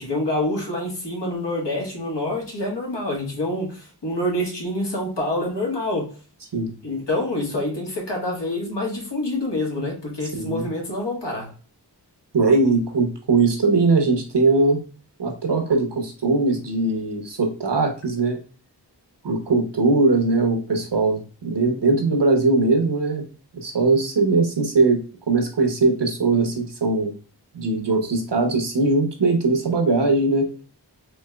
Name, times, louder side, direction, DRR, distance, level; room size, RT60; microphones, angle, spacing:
voice 1, 0.0-6.2 6.8-11.5, left 1 dB, 80° left, -2 dB, 1.5 m, -26 dB
voice 2, 10.3-10.7 12.3-14.8 15.2-18.4 19.2-23.2 23.6-25.0 25.3-27.1 27.5-30.5, right 3 dB, 80° right, 3 dB, 1.0 m, -20 dB
4.3 x 2.9 x 2.2 m, 0.35 s
cardioid pair, 40°, 42 cm